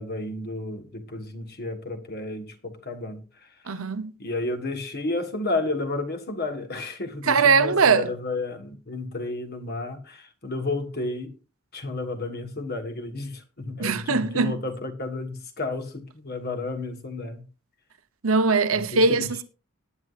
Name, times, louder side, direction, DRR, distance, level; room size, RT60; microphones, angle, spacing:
voice 1, 0.0-3.2 4.2-11.3 11.7-17.4 18.7-19.3, left 2 dB, 45° left, 1.5 m, -32 dB
voice 2, 3.7-4.1 7.2-8.1 13.8-14.6 18.2-19.4, right 4 dB, 70° right, 0.9 m, -21 dB
18.5 x 9.6 x 2.5 m
head